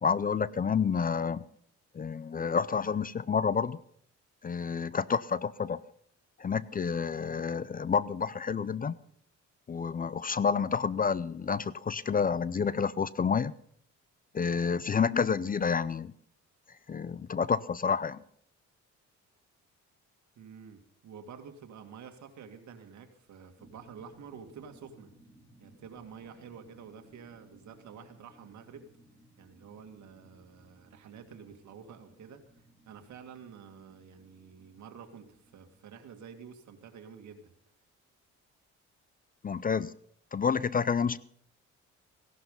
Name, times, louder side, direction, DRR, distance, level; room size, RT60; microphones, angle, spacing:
voice 1, 0.0-1.4 1.9-3.8 4.4-5.8 6.4-9.0 9.7-13.5 14.3-16.1 16.9-18.2 39.4-39.9 40.3-41.2, left 6 dB, 30° left, 19 dB, 0.5 m, -29 dB
voice 2, 20.4-25.1 25.6-28.9 29.4-32.4 32.9-37.5, right 7 dB, 70° right, 6 dB, 2.3 m, -49 dB
sound 1, 23.6-36.1, right 1 dB, ahead, 2.9 m, -61 dB
17.0 x 11.5 x 5.5 m, 0.65 s
cardioid pair, 90°, 30 cm